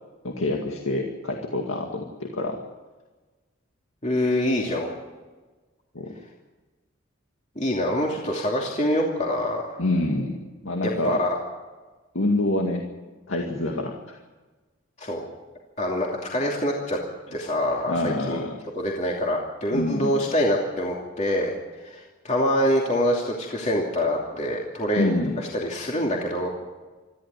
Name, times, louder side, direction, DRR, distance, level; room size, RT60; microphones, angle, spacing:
voice 1, 0.2-2.6 5.9-6.1 9.8-11.2 12.1-12.8 13.3-14.2 17.9-18.5 19.7-20.1 25.0-25.4, left 2 dB, 80° left, 1 dB, 2.1 m, -26 dB
voice 2, 4.0-4.9 7.6-9.8 10.8-11.4 15.0-15.2 15.8-17.0 17.3-18.4 18.8-21.5 21.8-26.5, equal, 35° left, -2 dB, 2.7 m, -25 dB
23.0 x 14.5 x 9.6 m, 1.3 s
head